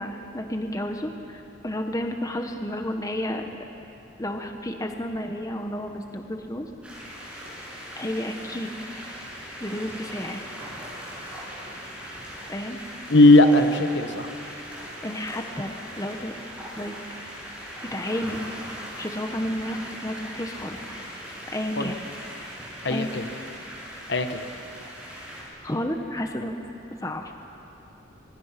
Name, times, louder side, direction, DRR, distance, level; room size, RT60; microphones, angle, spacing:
voice 1, 0.0-3.6 4.2-6.7 8.0-8.7 9.6-10.4 12.5-12.8 15.0-16.3 16.8-16.9 17.8-18.4 19.0-20.8 21.5-22.0 22.9-23.1 25.6-26.6 27.0-27.2, left 1 dB, 15° left, 4 dB, 1.2 m, -31 dB
sound 1, 6.8-25.4, equal, 5° right, 7.1 m, -40 dB
voice 2, 13.1-14.3 21.8-21.9 22.8-23.2 24.1-24.4, left 2 dB, 60° left, 7 dB, 1.4 m, -18 dB
25.5 x 23.5 x 6.0 m, 2.7 s
head